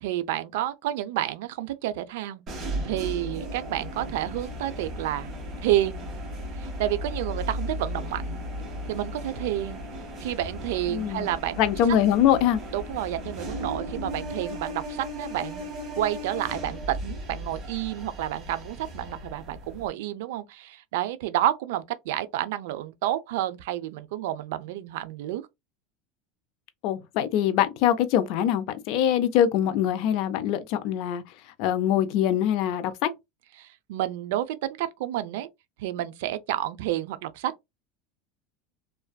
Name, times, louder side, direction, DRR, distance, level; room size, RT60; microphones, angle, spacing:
voice 1, 0.0-2.4 2.8-5.3 5.6-6.1 6.6-8.4 8.9-9.8 10.2-11.6 12.7-15.7 16.0-25.5 33.6-35.5 35.8-37.5, right 13 dB, 75° right, 0.3 m, -30 dB
sound 1, 2.5-19.9, equal, 25° right, 0.9 m, -36 dB
voice 2, 10.9-11.3 11.6-12.6 26.8-31.2 31.6-33.1, left 10 dB, 55° left, 0.4 m, -23 dB
2.5 x 2.2 x 2.2 m
supercardioid pair, 150°, 0 cm